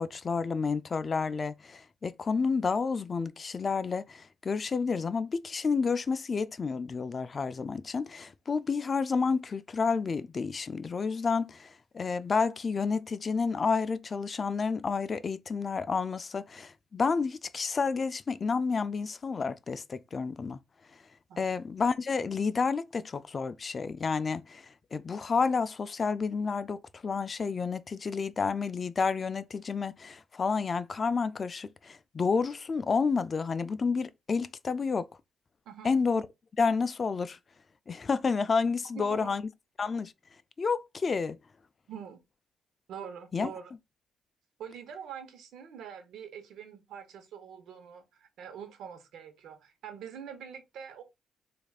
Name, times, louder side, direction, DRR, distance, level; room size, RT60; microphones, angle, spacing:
voice 1, 0.0-20.6 21.4-35.1 35.8-36.2 36.6-37.4 37.9-39.4 39.8-40.1 40.6-41.4 43.3-43.5, left 5 dB, 40° left, 0.3 m, -30 dB
voice 2, 38.9-39.4 41.9-42.2 42.9-43.7 44.6-51.0, right 8 dB, 75° right, 0.9 m, -44 dB
4.5 x 2.4 x 2.4 m
cardioid pair, 90°, 0 cm